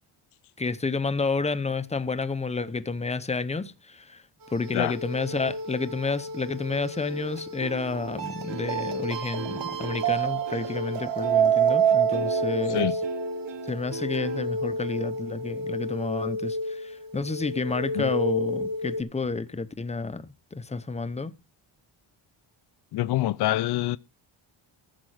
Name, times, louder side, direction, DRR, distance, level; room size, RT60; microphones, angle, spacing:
voice 1, 0.6-4.2 4.5-13.0 13.7-21.3, left 4 dB, 15° left, 0.7 m, -30 dB
sound 1, 4.5-19.0, right 4 dB, 45° right, 2.0 m, -29 dB
sound 2, 7.1-14.5, right 9 dB, 65° right, 1.2 m, -40 dB
voice 2, 22.9-24.0, left 15 dB, 55° left, 0.5 m, -26 dB
14.5 x 7.5 x 4.8 m
cardioid pair, 155°, 48 cm